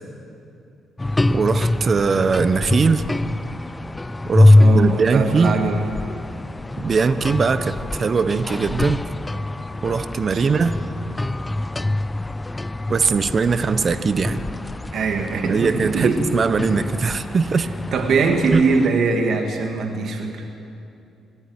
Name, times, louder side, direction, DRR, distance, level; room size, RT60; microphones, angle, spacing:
sound 1, 1.0-18.9, left 2 dB, 15° left, 0.5 m, -23 dB
voice 1, 1.3-3.0 4.3-5.5 6.8-9.0 9.8-10.8 12.9-14.4 15.5-17.7 18.5-18.6, right 5 dB, 40° right, 12 dB, 1.1 m, -20 dB
voice 2, 4.6-5.9 10.3-10.5 14.9-16.2 17.9-20.5, right 4 dB, 65° right, 4 dB, 2.2 m, -21 dB
27.5 x 13.5 x 9.9 m, 2.6 s
cardioid pair, 90°, 0 cm